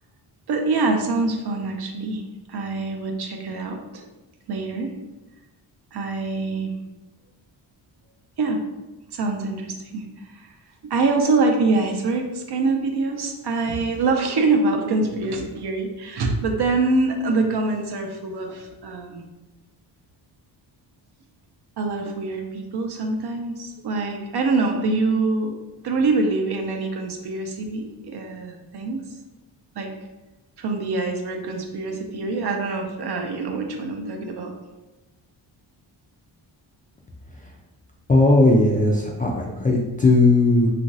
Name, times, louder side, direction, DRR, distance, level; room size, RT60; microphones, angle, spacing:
voice 1, 0.5-2.2 2.5-4.1 4.5-5.0 5.9-6.7 8.4-8.6 9.1-10.5 10.8-19.3 21.8-25.6 25.8-29.0 29.8-29.9 30.6-34.5, right 3 dB, 55° right, 4 dB, 0.6 m, -24 dB
voice 2, 38.1-40.7, left 2 dB, 20° left, -2 dB, 0.3 m, -17 dB
2.9 x 2.5 x 2.6 m, 1.1 s
cardioid pair, 65°, 49 cm